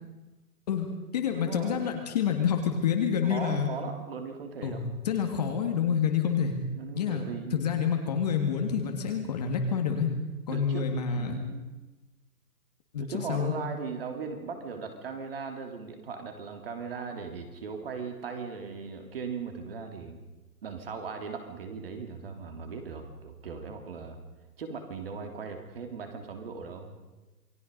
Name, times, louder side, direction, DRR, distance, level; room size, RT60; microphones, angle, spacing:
voice 1, 0.7-3.7 4.6-6.6 7.0-7.2 7.5-10.1 10.5-11.4 12.9-13.5, left 7 dB, 25° left, 4 dB, 1.9 m, -28 dB
voice 2, 1.3-1.9 3.3-4.8 6.7-7.6 10.5-11.7 13.0-20.2 20.6-24.2 24.6-27.0, right 5 dB, 35° right, 5 dB, 3.2 m, -38 dB
28.0 x 20.5 x 5.4 m, 1.1 s
hypercardioid pair, 175°, 47 cm